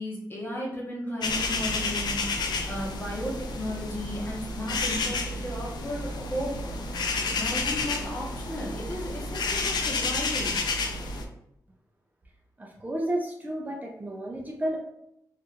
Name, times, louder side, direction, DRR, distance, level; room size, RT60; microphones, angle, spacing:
voice 1, 0.0-2.2 2.7-6.5 7.2-10.6, left 1 dB, 30° left, -3 dB, 1.0 m, -35 dB
sound 1, 1.2-11.2, left 3 dB, 80° left, 0.4 m, -30 dB
voice 2, 12.6-14.8, right 1 dB, 25° right, -1 dB, 0.4 m, -31 dB
2.8 x 2.4 x 2.4 m, 0.81 s
cardioid pair, 85°, 7 cm